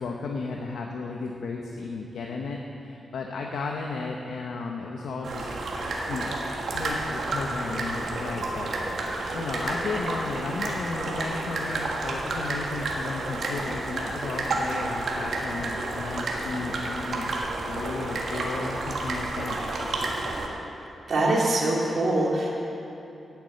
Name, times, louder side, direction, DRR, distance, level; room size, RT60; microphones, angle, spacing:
voice 1, 0.0-6.3 6.7-17.3 17.6-19.6, left 4 dB, 85° left, 1 dB, 0.9 m, -34 dB
sound 1, 5.2-20.5, right 2 dB, 70° right, 1.5 m, -30 dB
voice 2, 21.1-22.5, right 2 dB, 55° right, -4 dB, 2.4 m, -23 dB
9.6 x 8.3 x 8.5 m, 2.9 s
wide cardioid pair, 115°, 0 cm